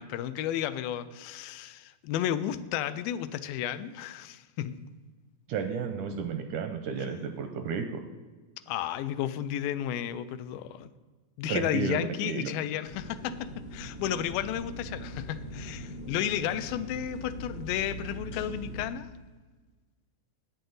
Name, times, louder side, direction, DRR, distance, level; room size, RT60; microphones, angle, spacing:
voice 1, 0.0-4.8 8.7-10.9 11.4-19.1, left 11 dB, 90° left, 13 dB, 2.3 m, -33 dB
voice 2, 5.5-8.0 11.5-12.5, right 6 dB, 80° right, 7 dB, 1.9 m, -32 dB
sound 1, 12.9-18.9, equal, 70° left, 2.4 m, -41 dB
11.5 x 9.1 x 3.9 m, 1.3 s
omnidirectional pair, 4.0 m